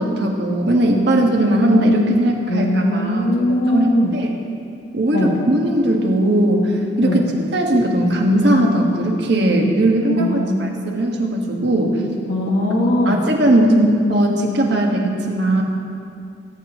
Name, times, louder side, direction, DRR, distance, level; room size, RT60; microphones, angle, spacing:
voice 1, 0.0-4.4 4.9-7.3 7.5-12.0 13.0-15.6, right 1 dB, 60° right, 0 dB, 1.5 m, -18 dB
voice 2, 2.5-4.1 5.1-5.4 7.0-7.2 10.2-10.6 12.3-13.2, left 1 dB, 65° left, -2 dB, 1.1 m, -20 dB
19.5 x 9.7 x 3.1 m, 2.5 s
head